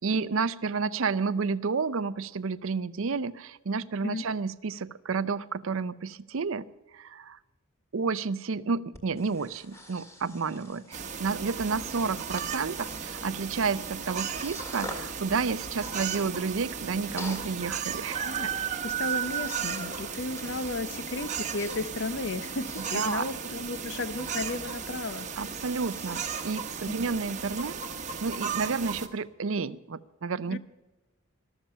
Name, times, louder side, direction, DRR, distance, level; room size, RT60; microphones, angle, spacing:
voice 1, 0.0-6.7 6.9-7.4 7.9-18.5 22.9-23.2 25.4-27.8 28.2-30.6, right 4 dB, 65° right, 16 dB, 0.5 m, -31 dB
Breathing, 8.9-27.6, left 1 dB, 15° left, 2.0 m, -47 dB
sound 1, 10.9-29.1, right 7 dB, 35° right, 1.1 m, -35 dB
voice 2, 18.8-25.3 26.9-27.0 30.5-30.6, left 3 dB, 55° left, 14 dB, 0.7 m, -34 dB
14.5 x 13.0 x 5.6 m, 1.1 s
head